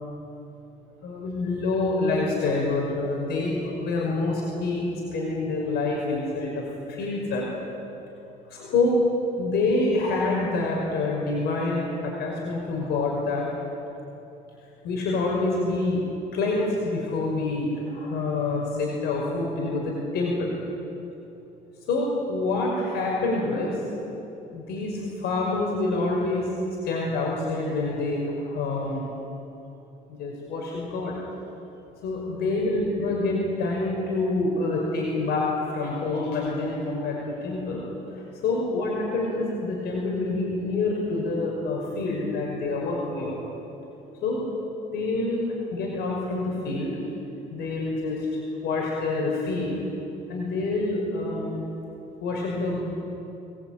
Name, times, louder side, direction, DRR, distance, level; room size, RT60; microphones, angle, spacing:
voice 1, 1.0-7.6 8.5-9.0 9.4-13.5 14.8-16.0 16.3-20.5 21.9-23.8 24.5-26.5 26.8-29.0 30.2-31.2 32.0-37.8 38.4-43.4 44.2-44.4 44.9-45.5 45.7-47.0 47.5-48.3 48.6-49.8 50.3-51.6 52.2-52.8, left 2 dB, 75° left, -2 dB, 5.6 m, -27 dB
25.0 x 20.0 x 9.0 m, 2.9 s
cardioid pair, 110°, 17 cm